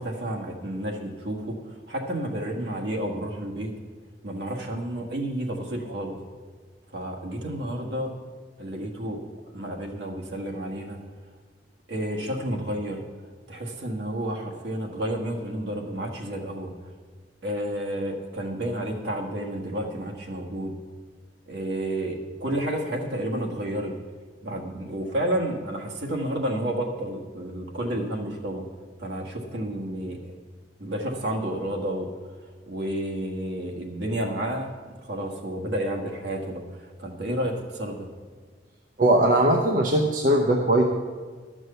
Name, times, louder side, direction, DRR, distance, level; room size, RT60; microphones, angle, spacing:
voice 1, 0.0-3.7 4.2-6.2 6.9-8.1 8.6-9.2 9.5-11.0 11.9-13.0 13.5-16.7 17.4-20.7 21.5-23.9 24.4-28.7 29.0-30.3 30.8-32.1 32.7-38.1, right 1 dB, 65° right, 0 dB, 1.5 m, -31 dB
voice 2, 39.0-40.8, right 1 dB, 45° right, 1 dB, 0.7 m, -20 dB
12.0 x 6.2 x 6.7 m, 1.5 s
head